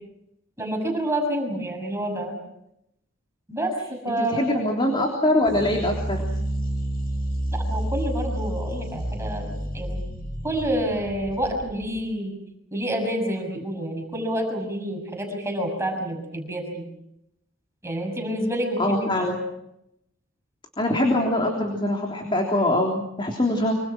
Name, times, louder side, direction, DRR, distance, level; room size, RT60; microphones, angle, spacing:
voice 1, 0.6-2.4 3.5-4.8 7.5-10.0 10.4-12.3 12.7-16.8 17.8-19.3, right 1 dB, 15° right, 2 dB, 6.5 m, -28 dB
voice 2, 4.1-6.2 18.8-19.4 20.8-23.7, left 1 dB, 25° left, 1 dB, 3.5 m, -23 dB
sound 1, 5.5-12.0, right 1 dB, 45° left, 6.9 m, -30 dB
26.0 x 26.0 x 6.2 m, 0.82 s
head